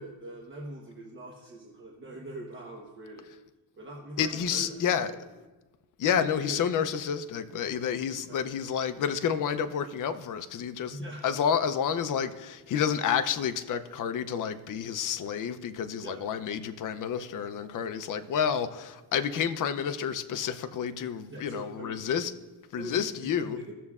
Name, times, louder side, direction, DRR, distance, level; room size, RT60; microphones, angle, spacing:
voice 1, 0.0-3.3 3.8-4.8 6.1-6.6 8.3-8.4 10.9-11.2 16.0-16.2 21.3-22.1 22.7-23.7, right 1 dB, 25° right, 1.0 m, -42 dB
voice 2, 4.2-5.4 6.0-22.3 22.7-23.6, left 7 dB, 45° left, 0.5 m, -30 dB
16.5 x 6.5 x 2.4 m
cardioid pair, 135°, 46 cm